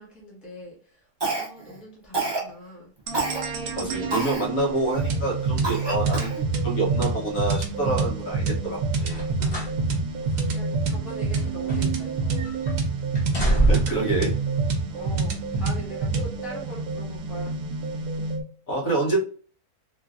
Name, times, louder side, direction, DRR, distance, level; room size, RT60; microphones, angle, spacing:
voice 1, 0.0-2.9 9.4-12.5 14.9-17.6, equal, ahead, -6 dB, 0.8 m, -42 dB
Cough, 1.2-1.7 2.1-2.5 3.1-3.4 4.1-4.5 5.0-5.1 5.6-6.4, right 3 dB, 40° right, 0.3 m, -28 dB
sound 1, 3.1-18.4, right 4 dB, 75° right, 1.0 m, -27 dB
voice 2, 3.8-6.4 6.6-9.2 13.4-14.3 18.7-19.2, right 2 dB, 65° left, -2 dB, 1.3 m, -27 dB
sound 2, 9.0-9.8 10.2-10.3 11.0-12.1 12.4-12.7 13.1-14.1 15.0-15.1, right 1 dB, 35° left, 0.9 m, -25 dB
3.1 x 2.4 x 2.4 m, 0.43 s
omnidirectional pair, 1.6 m